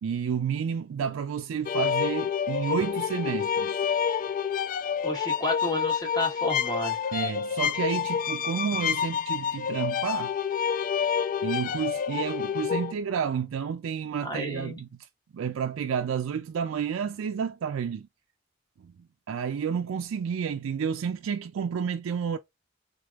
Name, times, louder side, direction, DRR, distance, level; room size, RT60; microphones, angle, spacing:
voice 1, 0.0-3.8 7.1-10.3 11.4-14.9 15.3-18.1 18.8-18.9 19.3-22.4, right 7 dB, 90° right, 0.4 m, -30 dB
sound 1, 1.7-12.9, left 7 dB, 45° left, 0.3 m, -28 dB
voice 2, 5.0-7.0 14.2-14.8, left 1 dB, 20° left, 1.3 m, -31 dB
3.6 x 3.3 x 2.4 m
head